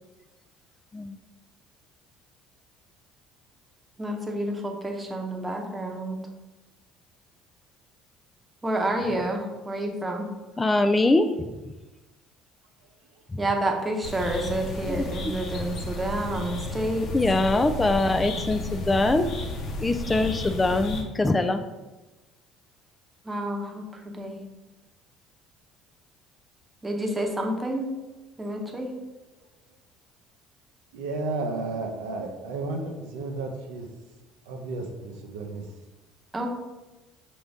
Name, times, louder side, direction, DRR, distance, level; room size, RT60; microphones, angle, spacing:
voice 1, 4.0-6.3 8.6-10.3 13.4-17.1 23.2-24.4 26.8-27.9 28.4-28.9 36.3-36.5, right 1 dB, 20° right, 1 dB, 0.9 m, -29 dB
voice 2, 10.6-11.6 13.3-13.4 14.9-15.4 17.1-19.3 19.8-21.6, left 2 dB, 20° left, 7 dB, 0.3 m, -23 dB
sound 1, 14.0-21.0, left 2 dB, 55° left, 0.9 m, -33 dB
voice 3, 30.9-33.9 34.5-35.7, right 3 dB, 80° right, 3 dB, 0.6 m, -33 dB
5.9 x 2.6 x 3.4 m, 1.1 s
hypercardioid pair, 65°, 0 cm